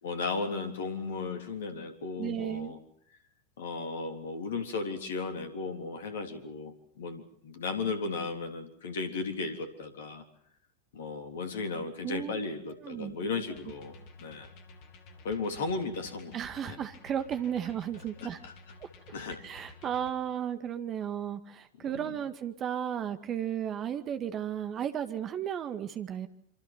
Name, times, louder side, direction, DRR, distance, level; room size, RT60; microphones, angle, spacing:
voice 1, 0.0-2.8 3.6-10.2 10.9-14.5 15.2-16.3 16.6-16.8 18.2-18.5 19.1-19.4 21.8-22.2, left 4 dB, 60° left, 7 dB, 3.5 m, -35 dB
voice 2, 2.2-2.7 12.0-12.5 12.8-13.2 16.3-18.4 18.8-18.9 19.4-26.3, right 9 dB, 30° right, 9 dB, 1.9 m, -34 dB
sound 1, 13.5-20.1, left 3 dB, 40° left, 3.3 m, -52 dB
26.5 x 25.5 x 6.1 m, 0.66 s
figure-of-eight pair, 90°, 0 cm